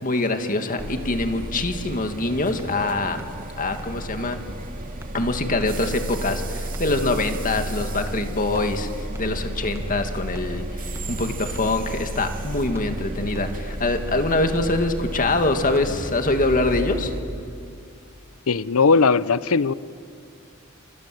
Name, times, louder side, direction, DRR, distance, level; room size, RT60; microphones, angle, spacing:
voice 1, 0.0-3.2 3.6-4.4 5.1-17.1, left 2 dB, 40° left, 6 dB, 2.0 m, -24 dB
sound 1, 0.8-17.2, right 1 dB, 40° right, 2.3 m, -33 dB
sound 2, 2.6-2.8 3.2-3.4 3.8-4.0 4.3-4.7 5.0-5.2 5.6-5.8 6.1-6.5 6.7-7.0 7.3-7.6 7.9-8.2 8.5-8.8 9.1-9.4 9.7-10.0 10.3-10.6 10.9-11.2 11.5-11.9 12.1-12.4 12.7-13.0 13.3-13.6 13.9-14.2 14.5-14.8 15.1-15.4 15.7-16.0, equal, 10° right, 1.0 m, -40 dB
voice 2, 18.5-19.7, left 4 dB, 80° left, 18 dB, 0.7 m, -18 dB
29.0 x 26.0 x 7.7 m, 2.3 s
head